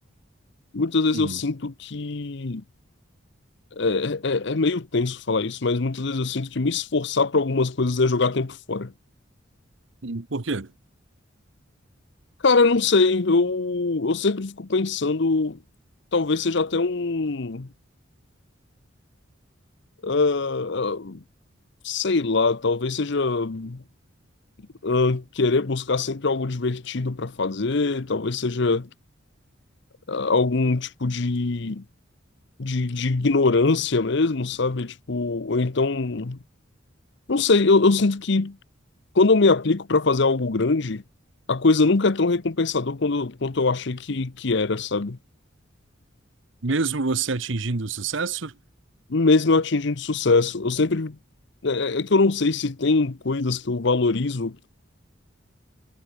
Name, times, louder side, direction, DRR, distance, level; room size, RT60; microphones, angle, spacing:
voice 1, 0.7-2.6 3.8-8.9 12.4-15.6 16.1-17.7 20.0-21.2 21.8-23.8 24.8-28.9 30.1-31.8 32.6-36.4 37.3-38.6 39.1-41.0 41.5-45.2 49.1-51.2 51.6-54.6, left 3 dB, 60° left, 0.8 m, -22 dB
voice 2, 10.0-10.7 46.6-48.5, right 4 dB, 65° right, 1.1 m, -27 dB
head